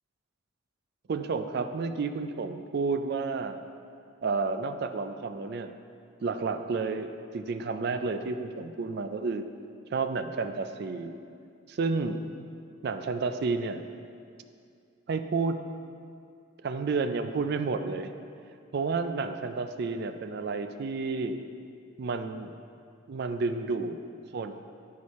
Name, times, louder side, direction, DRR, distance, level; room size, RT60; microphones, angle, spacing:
voice 1, 1.1-3.6 4.2-5.7 6.2-9.5 9.9-11.2 11.7-12.2 12.8-13.8 15.1-15.6 16.6-18.1 18.7-21.4 22.0-22.5 23.1-24.0 24.3-24.5, right 4 dB, 55° right, 9 dB, 0.4 m, -31 dB
9.9 x 4.7 x 4.1 m, 2.4 s
head